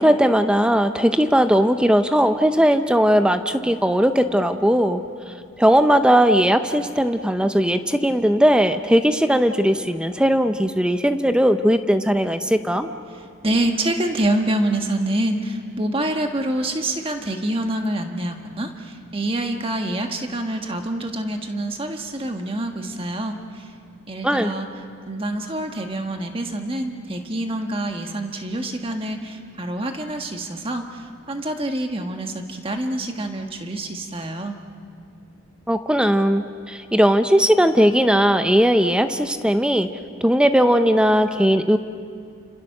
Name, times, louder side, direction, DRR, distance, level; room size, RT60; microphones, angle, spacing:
voice 1, 0.0-5.0 5.6-12.9 24.2-24.5 35.7-39.9 40.2-41.8, equal, 5° right, 8 dB, 0.7 m, -18 dB
voice 2, 13.4-23.7 24.1-24.7 25.1-34.6, right 1 dB, 25° right, 4 dB, 1.5 m, -26 dB
29.5 x 26.0 x 6.6 m, 2.4 s
head